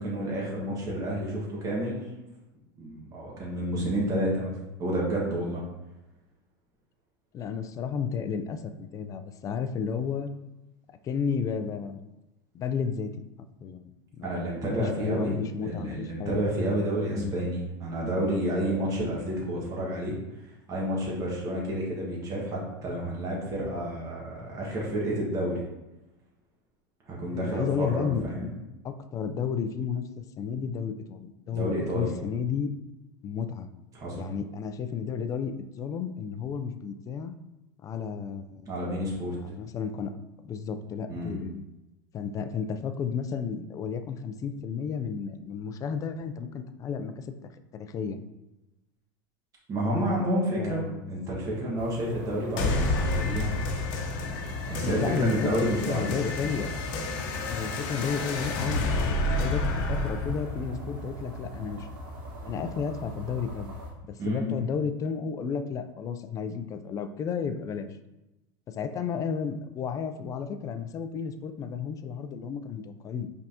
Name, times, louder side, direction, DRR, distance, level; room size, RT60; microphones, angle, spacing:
voice 1, 0.0-2.0 2.8-4.5 4.8-5.6 14.2-20.1 20.7-25.6 27.1-28.5 31.5-32.1 33.9-34.3 38.7-39.3 41.1-41.4 49.7-53.5 54.7-56.2 64.2-64.5, right 1 dB, 30° right, -4 dB, 1.4 m, -30 dB
voice 2, 7.3-10.3 11.0-12.1 12.5-13.3 13.6-13.8 14.2-16.4 17.1-17.3 27.3-28.2 28.8-32.7 33.2-33.7 34.2-37.4 37.8-38.6 39.4-40.1 40.4-41.6 42.1-48.2 50.6-51.1 54.8-56.9 57.5-61.9 62.4-63.8 64.1-67.9 68.7-73.3, left 6 dB, 30° left, 9 dB, 0.4 m, -32 dB
sound 1, 51.8-63.9, right 1 dB, 75° right, 1.3 m, -41 dB
sound 2, 52.6-61.6, left 2 dB, 60° left, 0.8 m, -30 dB
5.2 x 3.4 x 2.8 m, 0.98 s
supercardioid pair, 115°, 11 cm